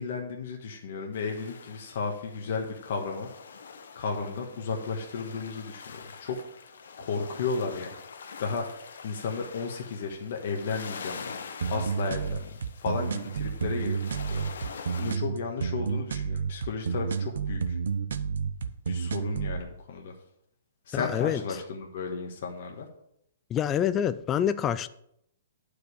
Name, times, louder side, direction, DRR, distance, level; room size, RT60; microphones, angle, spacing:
voice 1, 0.0-3.3 3.9-7.9 8.4-11.4 11.7-14.0 14.3-17.8 18.9-20.1 20.8-22.9, left 4 dB, 60° left, 1.4 m, -34 dB
sound 1, 1.1-15.1, left 5 dB, 80° left, 1.0 m, -45 dB
sound 2, 11.6-19.6, right 6 dB, 80° right, 0.8 m, -30 dB
voice 2, 20.9-21.4 23.5-24.9, left 9 dB, 20° left, 0.3 m, -26 dB
9.3 x 5.0 x 6.6 m
hypercardioid pair, 150°, 0 cm